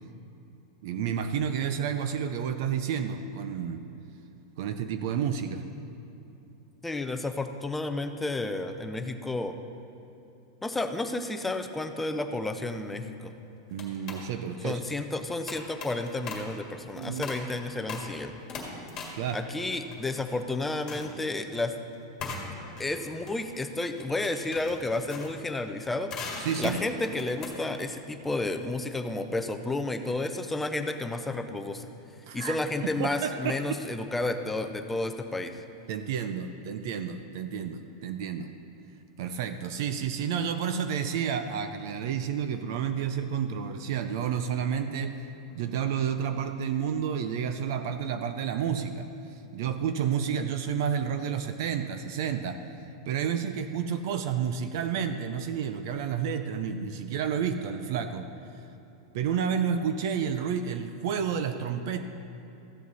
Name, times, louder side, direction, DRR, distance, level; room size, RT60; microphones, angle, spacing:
voice 1, 0.8-3.9 4.6-5.6 13.7-14.8 17.0-17.3 19.1-19.4 26.4-26.8 32.3-32.6 33.0-33.8 35.9-38.5 39.2-45.2 45.5-49.1 49.5-52.6 53.1-58.3 59.1-62.0, right 7 dB, 55° right, 8 dB, 0.6 m, -30 dB
voice 2, 6.8-9.5 10.6-13.3 14.6-18.3 19.3-21.7 22.8-26.1 26.6-31.9 32.3-35.6, left 2 dB, 5° left, 7 dB, 0.5 m, -31 dB
sound 1, 12.9-13.2 13.7-14.3 15.5-16.6 17.0-17.5 17.9-18.2 18.5-20.4 20.7-21.2 22.2-27.8, left 4 dB, 25° left, 1.9 m, -40 dB
14.5 x 7.7 x 4.1 m, 3.0 s
supercardioid pair, 160°, 2 cm